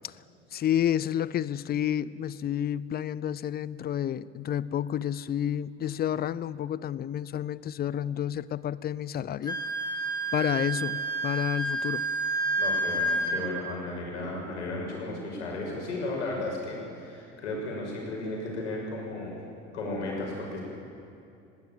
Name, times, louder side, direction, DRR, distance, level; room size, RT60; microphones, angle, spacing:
voice 1, 0.5-9.6 10.3-12.1, left 10 dB, 25° left, 0.6 m, -30 dB
Wind instrument woodwind instrument, 9.4-13.4, right 2 dB, 10° left, 3.2 m, -29 dB
voice 2, 12.6-19.4 19.7-20.6, left 2 dB, 80° left, 6.2 m, -34 dB
20.5 x 16.0 x 8.7 m
hypercardioid pair, 75°, 35 cm